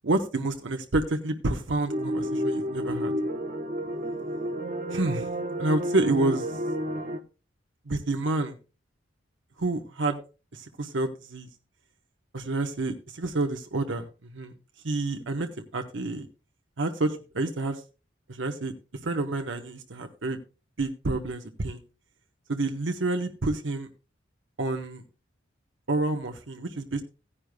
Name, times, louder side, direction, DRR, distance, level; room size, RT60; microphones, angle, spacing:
voice 1, 0.0-3.1 4.9-5.3 5.6-6.5 7.9-8.6 9.6-10.2 10.5-11.5 12.3-14.1 14.3-14.5 14.8-16.3 16.8-17.8 18.3-18.7 19.0-20.4 20.8-21.8 22.5-23.9 24.6-25.0 25.9-27.0, right 2 dB, 80° right, 6 dB, 0.9 m, -28 dB
sound 1, 1.9-7.2, equal, 45° right, 0.9 m, -30 dB
16.5 x 9.9 x 2.2 m, 0.33 s
head